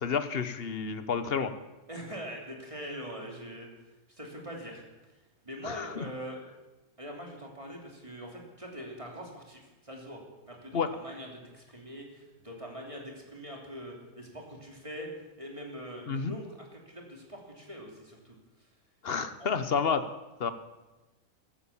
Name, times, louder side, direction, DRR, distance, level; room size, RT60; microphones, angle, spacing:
voice 1, 0.0-1.5 5.6-6.0 10.7-10.9 16.1-16.3 19.0-20.0 20.4-20.5, left 6 dB, 45° left, 11 dB, 1.1 m, -30 dB
voice 2, 1.9-3.7 4.2-5.1 5.4-6.4 7.0-18.4 19.4-19.6, equal, 20° right, 0 dB, 3.0 m, -43 dB
14.5 x 12.5 x 7.2 m, 1.1 s
omnidirectional pair, 1.5 m